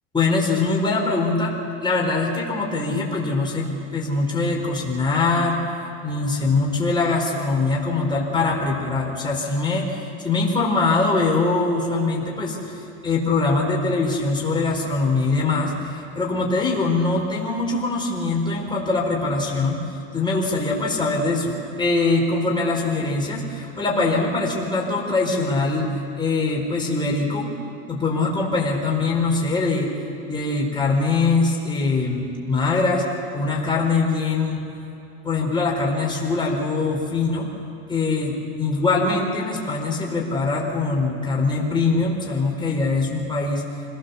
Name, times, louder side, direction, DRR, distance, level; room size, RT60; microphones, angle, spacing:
voice 1, 0.1-1.5 1.8-5.7 6.0-19.8 20.1-25.9 26.2-27.5 27.9-29.9 30.3-33.1 33.3-34.6 35.2-37.5 37.9-43.6, left 3 dB, 15° left, -2 dB, 4.6 m, -22 dB
26.0 x 18.5 x 7.2 m, 2.9 s
supercardioid pair, 105°, 34 cm